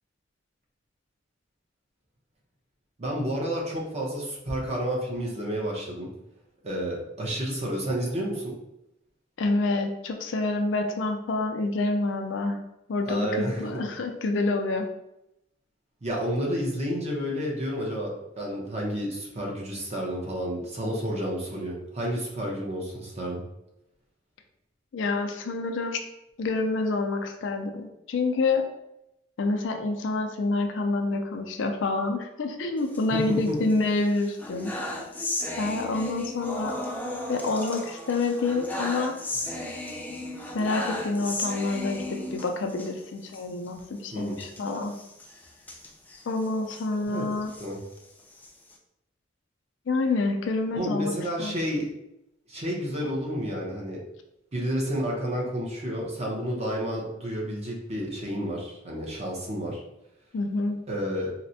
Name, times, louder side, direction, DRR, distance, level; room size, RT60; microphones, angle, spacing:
voice 1, 3.0-6.1 6.6-8.5 13.0-13.8 16.0-23.4 33.1-33.6 44.1-44.3 47.1-47.2 47.6-47.8 50.7-51.9 52.5-54.0 54.5-59.8 60.9-61.3, equal, 35° right, -2 dB, 0.8 m, -30 dB
voice 2, 9.4-12.6 12.9-14.9 24.9-26.0 26.4-28.6 29.4-34.7 35.6-36.7 37.3-39.1 40.5-45.0 46.3-47.5 49.9-51.6 60.3-60.8, left 3 dB, 70° left, 5 dB, 0.4 m, -27 dB
sound 1, 32.8-33.7 34.1-42.9 43.3-43.4 43.7-43.8 44.3-46.9 47.3-48.7, left 1 dB, 10° left, 0.4 m, -35 dB
4.1 x 2.1 x 2.6 m, 0.86 s
head